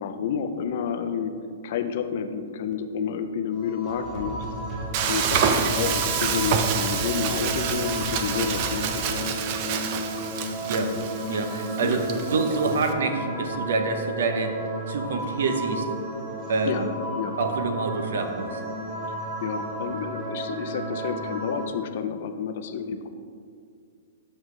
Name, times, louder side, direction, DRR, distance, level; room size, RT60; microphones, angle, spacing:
voice 1, 0.0-1.3 1.6-4.4 5.1-9.2 11.8-12.0 16.7-16.9 17.2-17.4 19.4-23.1, left 7 dB, 50° left, 8 dB, 0.5 m, -30 dB
sound 1, 3.5-21.7, right 1 dB, 20° right, 1.6 m, -34 dB
sound 2, 3.9-9.1, equal, 20° left, 1.5 m, -37 dB
Frying (food), 4.9-12.9, right 7 dB, 35° right, 0.5 m, -28 dB
voice 2, 10.6-11.0 11.3-14.6 14.9-15.9 16.5-16.9 17.4-18.6, right 3 dB, 70° right, 6 dB, 0.7 m, -26 dB
7.2 x 6.2 x 3.2 m, 2.2 s
hypercardioid pair, 155°, 0 cm